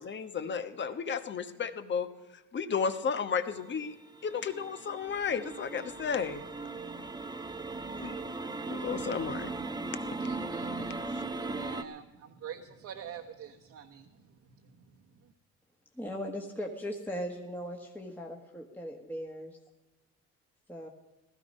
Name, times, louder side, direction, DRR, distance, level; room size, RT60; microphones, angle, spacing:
voice 1, 0.0-2.1 2.5-3.9 4.2-6.5 8.0-8.2 8.7-9.5 11.1-11.2, left 6 dB, 40° left, 10 dB, 1.2 m, -33 dB
sound 1, 3.5-11.8, right 3 dB, 15° right, 0.9 m, -38 dB
voice 2, 10.2-14.3 14.6-14.7, right 8 dB, 60° right, 0 dB, 1.3 m, -46 dB
voice 3, 16.0-19.6 20.7-20.9, equal, 5° left, 0 dB, 1.5 m, -38 dB
16.0 x 14.0 x 5.5 m, 1.1 s
cardioid pair, 100°, 30 cm